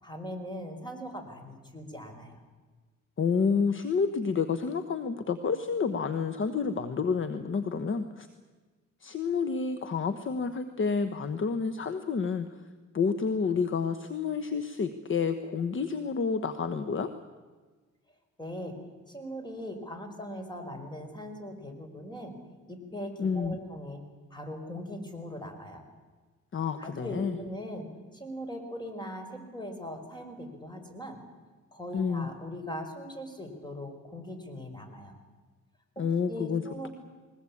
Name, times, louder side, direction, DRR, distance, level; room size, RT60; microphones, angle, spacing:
voice 1, 0.0-2.4 18.4-18.7 19.1-22.3 22.7-24.0 24.3-25.8 26.8-31.2 31.7-35.2 36.0-36.9, equal, 15° left, 5 dB, 5.2 m, -40 dB
voice 2, 3.2-8.3 9.0-12.5 12.9-17.1 23.2-23.6 26.5-27.4 31.9-32.3 36.0-36.9, left 5 dB, 40° left, 11 dB, 1.3 m, -29 dB
21.5 x 20.0 x 8.7 m, 1.4 s
cardioid pair, 90°, 30 cm